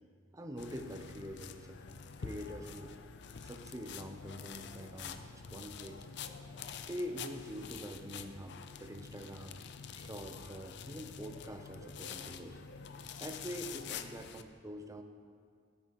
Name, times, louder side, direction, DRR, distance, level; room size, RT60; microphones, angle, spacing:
voice 1, 0.3-3.0 3.4-6.1 6.9-9.6 10.0-12.6 13.2-15.0, equal, 15° right, 5 dB, 0.6 m, -45 dB
sound 1, 0.6-14.4, left 6 dB, 60° left, 0.5 m, -47 dB
15.0 x 8.5 x 3.0 m, 2.1 s
head